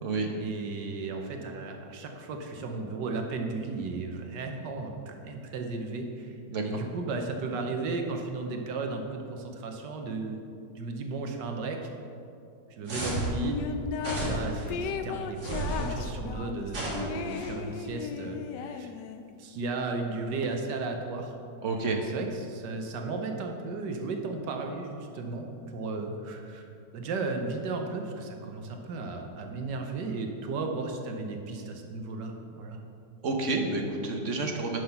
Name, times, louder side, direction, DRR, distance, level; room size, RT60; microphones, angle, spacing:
voice 1, 0.4-6.4 6.6-10.4 10.7-11.9 12.7-13.6 14.2-18.9 19.4-21.3 21.6-26.7 26.9-32.8, right 3 dB, 85° right, 3 dB, 1.5 m, -35 dB
sound 1, 12.9-13.4 14.0-14.6 15.4-15.9 16.7-17.5, right 2 dB, 70° right, 2.8 m, -32 dB
sound 2, 13.6-14.4 14.7-19.3, left 7 dB, 90° left, 1.2 m, -36 dB
voice 2, 21.6-22.0 33.2-34.8, right 3 dB, 50° right, 2 dB, 1.3 m, -29 dB
11.0 x 5.7 x 5.8 m, 2.6 s
omnidirectional pair, 1.8 m